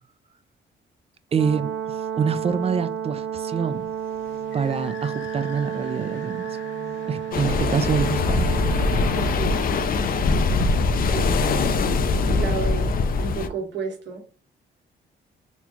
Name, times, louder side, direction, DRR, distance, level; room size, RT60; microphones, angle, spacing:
voice 1, 1.3-3.9 4.5-6.5 7.0-8.5, right 6 dB, 30° right, 13 dB, 0.4 m, -26 dB
Brass instrument, 1.3-9.3, right 9 dB, 85° right, 0.5 m, -31 dB
sound 1, 3.7-11.0, left 4 dB, 70° left, 0.8 m, -45 dB
sound 2, 7.3-13.5, left 3 dB, 45° left, 0.5 m, -22 dB
voice 2, 9.1-9.7 11.0-11.7 12.2-14.2, right 5 dB, 60° right, 1 dB, 1.3 m, -32 dB
4.1 x 2.2 x 2.9 m, 0.36 s
cardioid pair, 90°, 20 cm